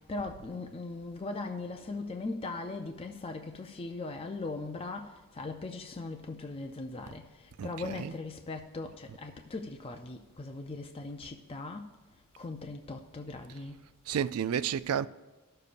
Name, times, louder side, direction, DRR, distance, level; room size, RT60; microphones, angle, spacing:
voice 1, 0.1-5.1 5.4-7.2 7.6-11.8 12.4-13.7, left 3 dB, 25° left, 0.4 m, -39 dB
voice 2, 7.6-8.2 14.1-15.1, right 8 dB, 70° right, 0.3 m, -31 dB
19.0 x 6.7 x 2.5 m
head